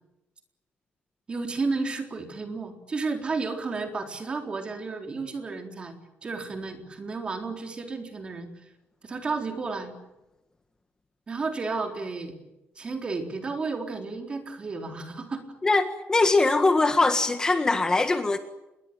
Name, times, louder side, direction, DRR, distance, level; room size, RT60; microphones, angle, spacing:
voice 1, 1.3-6.0 6.2-8.5 9.0-9.9 11.3-12.3 12.8-15.5, right 4 dB, 25° right, 5 dB, 4.0 m, -32 dB
voice 2, 15.6-18.4, left 3 dB, 20° left, 8 dB, 1.6 m, -22 dB
27.0 x 22.0 x 9.0 m, 0.95 s
cardioid pair, 165°, 4 cm